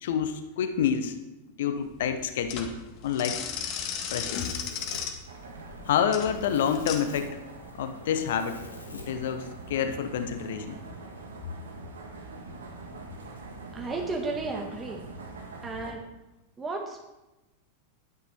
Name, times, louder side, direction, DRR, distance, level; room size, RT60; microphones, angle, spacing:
voice 1, 0.0-1.2 1.6-2.7 3.0-3.4 4.1-4.5 5.9-7.4 7.7-8.6 8.9-10.8, left 8 dB, 55° left, 9 dB, 1.0 m, -28 dB
sound 1, 1.8-7.0, left 8 dB, 40° left, 1.7 m, -35 dB
Domestic sounds home sounds, 3.6-9.8, left 3 dB, 80° left, 1.7 m, -48 dB
sound 2, 5.3-15.9, right 3 dB, 70° right, 1.8 m, -44 dB
voice 2, 13.7-15.0 15.6-16.0 16.6-17.0, right 3 dB, 15° right, 1 dB, 1.6 m, -33 dB
12.5 x 9.7 x 4.4 m, 1.0 s
figure-of-eight pair, 90°, 0 cm